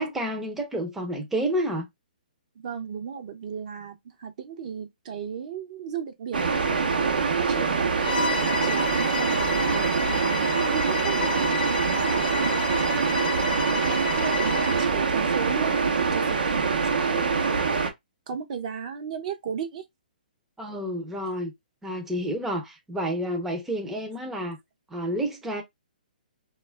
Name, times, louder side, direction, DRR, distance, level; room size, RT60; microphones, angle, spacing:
voice 1, 0.0-1.9 20.6-21.5 21.8-24.6 24.9-25.6, right 1 dB, 5° right, 0.5 m, -29 dB
voice 2, 2.6-10.5 10.7-13.2 13.7-17.3 18.3-19.9, right 7 dB, 50° right, 0.6 m, -35 dB
sound 1, 6.3-17.9, right 5 dB, 80° right, 0.8 m, -24 dB
Bowed string instrument, 8.0-15.0, left 5 dB, 75° left, 0.5 m, -32 dB
2.3 x 2.0 x 3.2 m
hypercardioid pair, 145°, 5 cm